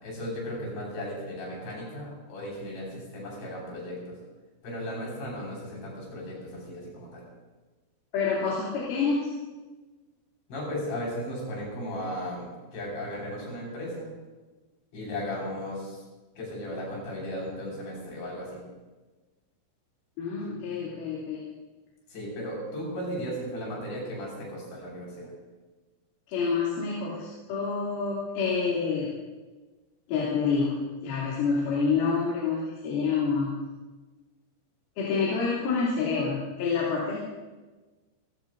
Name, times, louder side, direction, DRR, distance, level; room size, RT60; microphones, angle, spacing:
voice 1, 0.0-4.2 4.6-7.2 10.5-14.1 14.9-16.0 16.4-18.6 22.1-25.3, equal, 70° left, -3 dB, 7.7 m, -36 dB
voice 2, 8.1-9.3 20.2-21.4 26.3-29.1 30.1-33.6 35.0-37.2, left 5 dB, 85° left, -6 dB, 5.5 m, -27 dB
28.5 x 16.0 x 2.7 m, 1.3 s
omnidirectional pair, 5.4 m